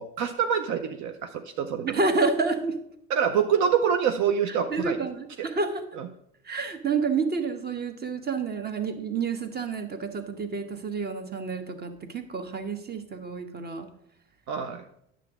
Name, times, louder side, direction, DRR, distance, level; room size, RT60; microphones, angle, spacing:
voice 1, 0.0-1.9 3.1-5.0 5.4-5.5 5.9-6.1 14.5-14.8, right 7 dB, 60° right, 7 dB, 0.7 m, -26 dB
voice 2, 1.8-2.8 4.7-5.8 6.5-13.9, right 4 dB, 30° right, 8 dB, 1.1 m, -29 dB
9.3 x 7.1 x 3.6 m, 0.74 s
supercardioid pair, 85°, 33 cm